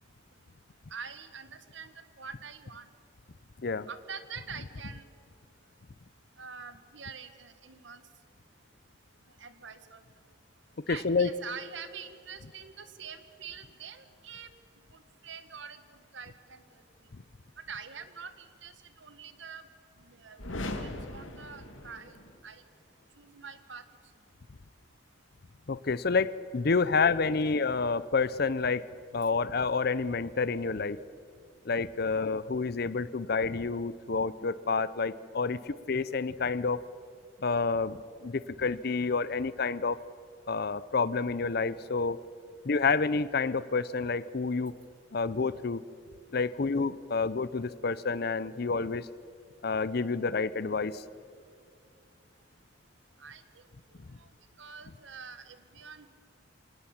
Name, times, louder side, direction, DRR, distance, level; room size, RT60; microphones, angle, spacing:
voice 1, 0.9-2.9 3.9-5.0 6.4-8.0 9.4-10.0 10.9-14.5 14.9-16.8 17.6-19.7 20.0-20.4 20.6-22.2 22.4-22.6 23.1-23.8 53.2-53.6 53.9-54.3 54.6-56.1, right 6 dB, 70° right, 11 dB, 1.7 m, -45 dB
voice 2, 10.9-11.3 17.1-17.2 25.7-28.8 29.1-31.0 31.6-36.8 37.4-40.0 40.5-42.2 42.6-44.7 45.1-45.8 46.3-49.1 49.6-51.0, left 4 dB, 50° left, 17 dB, 0.6 m, -29 dB
sound 1, 20.4-22.4, left 1 dB, 90° left, 2.5 m, -39 dB
26.5 x 18.5 x 7.2 m, 2.3 s
head